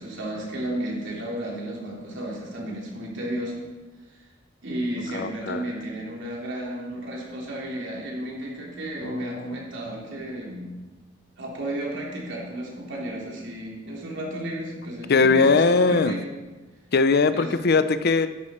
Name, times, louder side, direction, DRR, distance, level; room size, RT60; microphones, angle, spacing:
voice 1, 0.0-3.6 4.6-10.7 11.4-16.2 17.3-17.5, right 1 dB, 65° right, -3 dB, 3.4 m, -33 dB
voice 2, 5.1-5.6 9.0-9.6 15.1-16.1 16.9-18.3, left 4 dB, 55° left, 12 dB, 0.6 m, -20 dB
12.0 x 11.0 x 4.4 m, 1.2 s
head